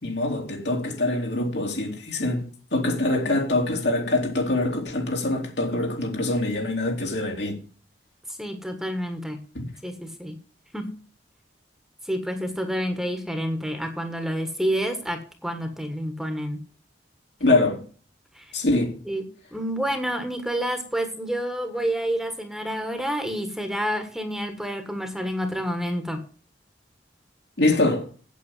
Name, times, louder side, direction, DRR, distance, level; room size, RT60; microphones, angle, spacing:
voice 1, 0.0-7.6 9.5-9.7 17.4-17.8 18.5-19.0 27.6-28.1, left 2 dB, 70° left, 3.4 m, -24 dB
voice 2, 8.4-9.4 9.8-10.4 10.7-10.9 12.0-16.6 18.3-18.5 19.1-19.2 19.5-26.2, equal, ahead, 1.4 m, -29 dB
8.5 x 8.4 x 7.5 m
head